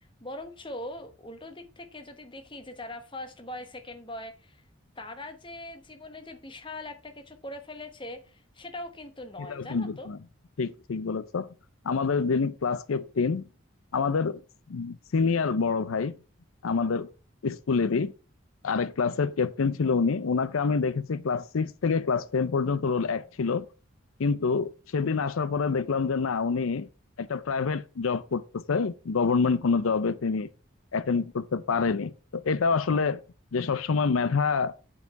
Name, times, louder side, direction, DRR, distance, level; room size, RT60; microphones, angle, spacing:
voice 1, 0.2-4.6 5.0-10.1, left 1 dB, 25° left, 1.1 m, -41 dB
voice 2, 9.5-10.2 10.6-11.5 11.8-13.4 13.9-14.4 14.7-16.2 16.6-17.1 17.4-18.1 18.6-23.7 24.2-26.9 27.2-30.5 30.9-33.2 33.5-34.7, left 5 dB, 85° left, 0.5 m, -27 dB
8.1 x 4.8 x 5.8 m
head